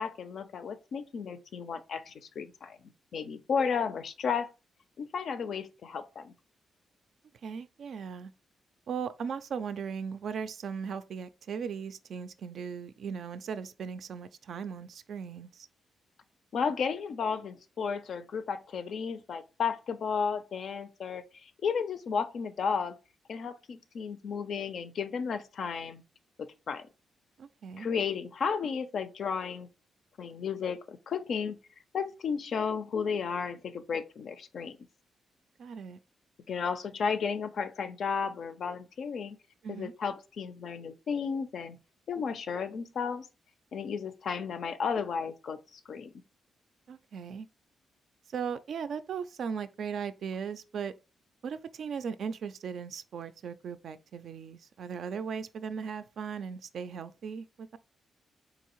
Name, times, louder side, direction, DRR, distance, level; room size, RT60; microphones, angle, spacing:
voice 1, 0.0-4.5 5.0-6.3 16.5-23.0 23.3-26.0 26.4-26.9 27.8-29.7 30.2-31.6 31.9-34.9 36.5-39.4 39.7-41.8 42.1-43.3 43.7-46.1, left 6 dB, 60° left, 0.4 m, -33 dB
voice 2, 7.4-8.3 8.9-15.7 27.4-27.9 35.6-36.0 39.6-39.9 46.9-47.5 48.3-50.9 51.4-57.8, right 6 dB, 65° right, 0.3 m, -38 dB
3.9 x 2.7 x 2.9 m
cardioid pair, 115°, 0 cm